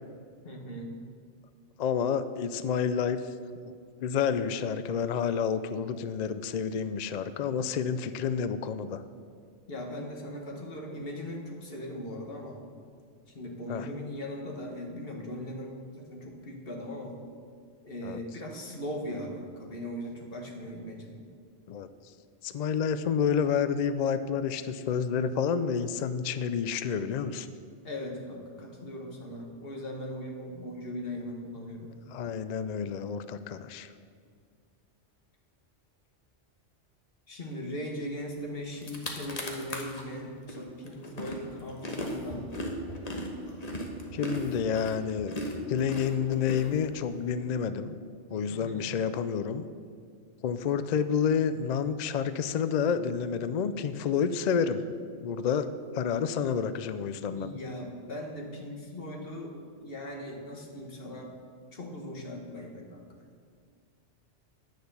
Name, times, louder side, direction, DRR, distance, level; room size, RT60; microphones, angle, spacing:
voice 1, 0.4-0.9 9.7-12.6 13.3-17.2 17.8-21.2 27.8-31.9 37.3-42.6 48.5-49.0 57.3-61.3 61.7-63.1, left 1 dB, 50° left, 0 dB, 1.7 m, -39 dB
voice 2, 1.8-3.2 3.7-3.8 4.0-9.0 13.7-13.9 18.0-18.2 21.7-21.9 22.4-27.5 32.1-33.9 44.1-45.3 45.7-48.0 48.3-49.6 50.4-54.8 55.2-57.5, left 7 dB, 70° left, 12 dB, 0.4 m, -29 dB
sound 1, 38.4-38.5 38.7-40.0 40.5-47.2, equal, 35° left, 1.2 m, -37 dB
9.6 x 6.6 x 6.8 m, 2.1 s
omnidirectional pair, 1.2 m